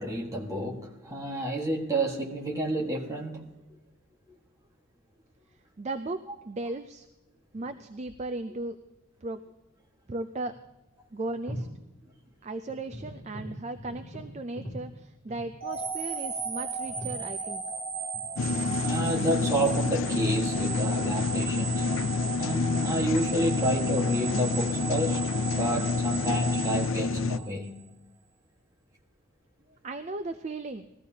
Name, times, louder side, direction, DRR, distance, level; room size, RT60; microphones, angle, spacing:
voice 1, 0.0-3.5 18.8-21.8 22.4-25.2 25.5-27.8, right 1 dB, 15° right, 1.5 m, -30 dB
voice 2, 5.8-7.1 7.5-8.8 9.2-9.4 10.1-10.5 11.1-11.7 12.4-17.6 29.8-30.9, right 2 dB, 30° right, 0.4 m, -36 dB
sound 1, 7.5-8.4 10.1-10.2 10.5-10.7 11.3-11.8 12.1-12.3 12.7-15.8 16.4-16.5 16.8-17.2 18.1-18.7 19.2-19.8 20.5-21.2 21.6-21.9 22.5-25.5 25.8-27.2, equal, 40° left, 5.6 m, -43 dB
sound 2, 15.6-27.8, right 5 dB, 55° right, 1.7 m, -36 dB
sound 3, 18.4-27.4, left 4 dB, 60° left, 0.4 m, -28 dB
20.0 x 14.5 x 2.8 m
head